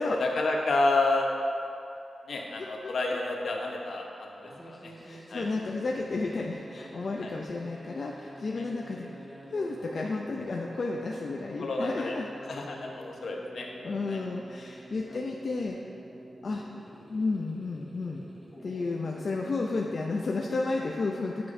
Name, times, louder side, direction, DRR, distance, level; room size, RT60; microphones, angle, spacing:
voice 1, 0.2-1.3 2.3-4.9 5.3-5.5 7.2-7.3 8.6-8.7 11.6-12.2 12.5-13.7 14.1-14.2 15.1-15.2, left 2 dB, 70° left, 0 dB, 0.9 m, -30 dB
sound 1, 4.3-20.9, equal, 10° right, 1.3 m, -47 dB
voice 2, 5.0-9.1 9.5-12.3 13.8-15.8 16.4-16.6 17.1-18.3 18.6-21.5, left 3 dB, 50° left, -1 dB, 0.4 m, -32 dB
9.7 x 6.9 x 2.6 m, 2.7 s
wide cardioid pair, 140°, 0 cm